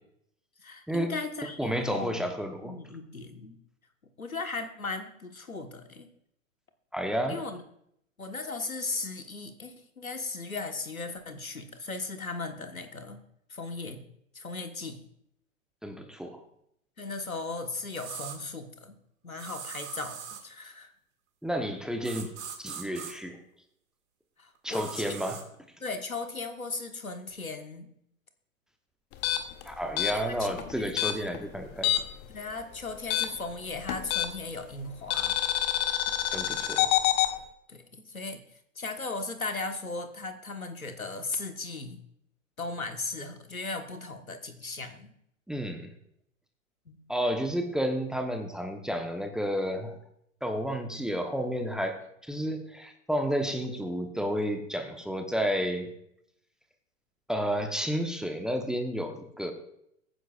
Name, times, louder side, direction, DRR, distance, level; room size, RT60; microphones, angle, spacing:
voice 1, 0.6-2.3 2.6-3.6 4.2-6.1 7.3-7.6 8.2-13.2 13.5-14.0 14.3-15.0 17.0-18.9 19.2-20.9 24.4-25.4 25.8-27.9 30.1-31.3 32.3-35.4 37.7-38.4 38.7-42.0 42.6-45.1 46.8-47.0, left 3 dB, 85° left, 6 dB, 1.5 m, -37 dB
voice 2, 1.6-2.8 6.9-7.4 15.8-16.4 21.4-22.3 22.6-23.4 24.6-25.4 29.6-31.9 36.3-36.9 45.5-45.9 47.1-49.9 50.4-55.9 57.3-59.5, equal, ahead, 5 dB, 1.0 m, -31 dB
sound 1, 17.9-18.4 19.4-20.4 22.0-23.1 24.7-25.4, right 7 dB, 55° right, 2.4 m, -41 dB
sound 2, 29.1-32.3 32.5-34.6 35.1-37.3, left 12 dB, 25° left, 0.9 m, -27 dB
22.0 x 9.8 x 2.5 m, 0.74 s
figure-of-eight pair, 105°, 41 cm